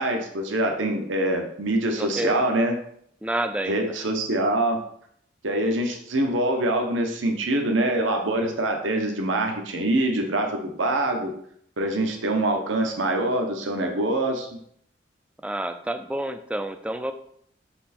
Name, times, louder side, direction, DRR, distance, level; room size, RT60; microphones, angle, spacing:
voice 1, 0.0-2.7 3.7-4.8 5.4-11.3 11.8-14.5, right 1 dB, 85° right, 3 dB, 0.9 m, -24 dB
voice 2, 2.0-2.4 3.2-3.9 15.4-17.1, right 1 dB, 5° right, 8 dB, 0.3 m, -29 dB
5.9 x 4.4 x 4.2 m, 0.67 s
head